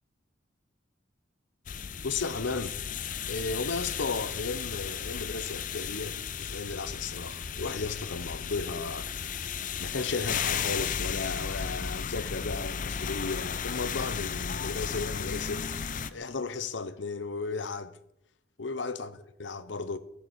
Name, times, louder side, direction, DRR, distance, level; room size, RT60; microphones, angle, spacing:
sound 1, 1.7-16.1, left 7 dB, 45° left, 0.5 m, -34 dB
voice 1, 2.0-2.8 3.3-9.1 9.8-15.7 16.1-18.0 18.6-20.0, left 4 dB, 70° left, 0.8 m, -34 dB
11.5 x 6.6 x 8.2 m
head